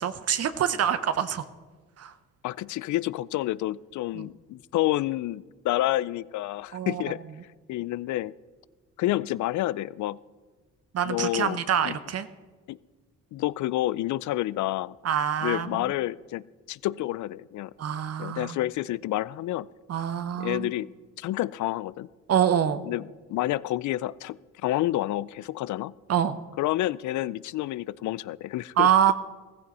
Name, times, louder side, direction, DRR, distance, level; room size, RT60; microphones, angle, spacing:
voice 1, 0.0-1.5 2.0-2.1 4.1-4.3 6.7-7.1 10.9-12.3 15.0-15.9 17.8-18.6 19.9-20.7 22.3-22.8 26.1-26.4 28.8-29.1, right 9 dB, 55° right, 12 dB, 0.8 m, -25 dB
voice 2, 2.4-7.2 7.7-8.3 9.0-10.2 11.0-12.0 12.7-12.8 13.3-15.0 15.4-17.7 18.2-19.7 20.4-20.9 21.2-22.1 22.8-24.4 24.6-25.9 26.6-29.1, left 15 dB, 75° left, 21 dB, 0.5 m, -29 dB
15.0 x 15.0 x 4.2 m, 1.4 s
cardioid pair, 90°, 30 cm